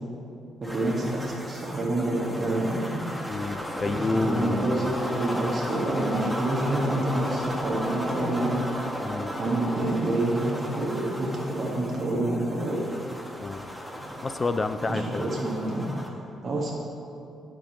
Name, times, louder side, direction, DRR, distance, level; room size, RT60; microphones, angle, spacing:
sound 1, 0.6-16.1, equal, ahead, 0.8 m, -35 dB
voice 1, 0.6-3.0 3.8-8.6 9.4-12.8 14.9-15.8 16.4-16.7, right 1 dB, 40° right, -4 dB, 1.5 m, -27 dB
voice 2, 3.3-4.9 9.0-9.3 13.4-13.7 14.2-15.3, left 3 dB, 25° left, 11 dB, 0.3 m, -29 dB
12.0 x 5.0 x 3.0 m, 2.7 s
cardioid pair, 90°, 0 cm